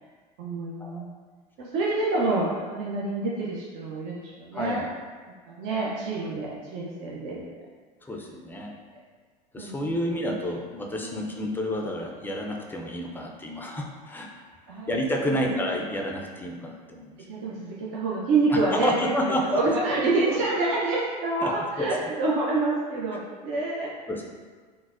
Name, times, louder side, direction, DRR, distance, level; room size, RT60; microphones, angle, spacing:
voice 1, 0.4-1.1 1.6-4.8 5.5-7.5 9.6-10.1 11.0-11.3 14.7-14.9 15.3-15.5 17.2-18.9 19.3-23.9, right 3 dB, 55° right, -5 dB, 0.6 m, -27 dB
voice 2, 4.5-4.9 8.0-8.7 9.5-14.4 14.9-17.3 18.5-19.7 21.4-21.5 21.8-21.9 24.1-24.2, equal, 10° left, 0 dB, 0.4 m, -30 dB
3.8 x 2.1 x 2.5 m, 1.5 s
hypercardioid pair, 85°, 21 cm